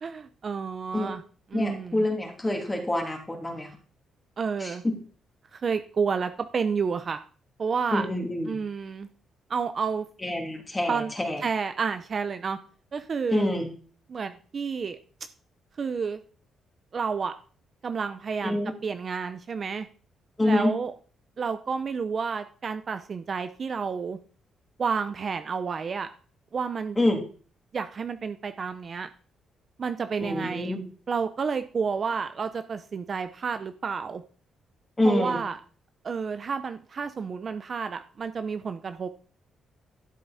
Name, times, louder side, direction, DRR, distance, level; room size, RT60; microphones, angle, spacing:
voice 1, 0.0-1.2 1.5-2.0 4.4-4.8 5.5-7.2 7.6-8.1 8.4-9.1 9.5-10.1 10.9-11.1 11.4-12.6 12.9-13.5 14.1-15.0 15.8-16.2 16.9-17.3 17.8-19.9 20.4-20.9 21.4-24.2 24.8-26.1 26.5-27.0 27.7-29.1 29.8-30.8 31.1-34.2 35.0-35.6 36.0-39.1, right 5 dB, 40° right, 9 dB, 0.7 m, -30 dB
voice 2, 1.5-3.7 4.6-4.9 7.9-8.6 10.2-11.4 13.3-13.7 18.4-18.7 20.4-20.7 27.0-27.2 30.2-30.8 35.0-35.4, left 1 dB, 15° left, 2 dB, 3.0 m, -26 dB
12.5 x 7.7 x 4.2 m, 0.41 s
cardioid pair, 125°, 0 cm